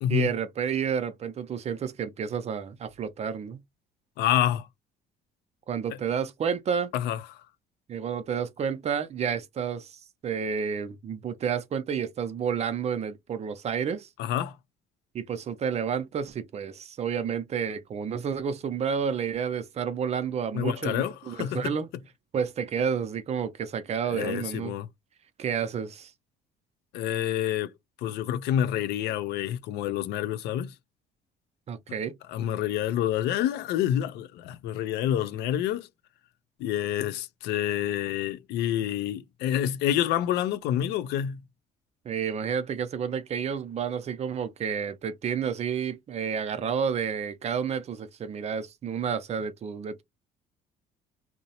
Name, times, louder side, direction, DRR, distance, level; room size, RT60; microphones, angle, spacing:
voice 1, 0.1-3.6 5.7-6.9 7.9-14.1 15.1-21.9 22.3-24.7 25.4-26.1 31.7-32.2 42.1-50.0, right 7 dB, 40° right, 0.5 m, -30 dB
voice 2, 4.2-4.7 6.9-7.2 14.2-14.6 20.5-21.8 24.0-24.9 26.9-27.7 28.0-30.7 32.3-35.9 36.6-41.4, left 11 dB, 80° left, 0.4 m, -28 dB
2.7 x 2.0 x 2.8 m
cardioid pair, 110°, 17 cm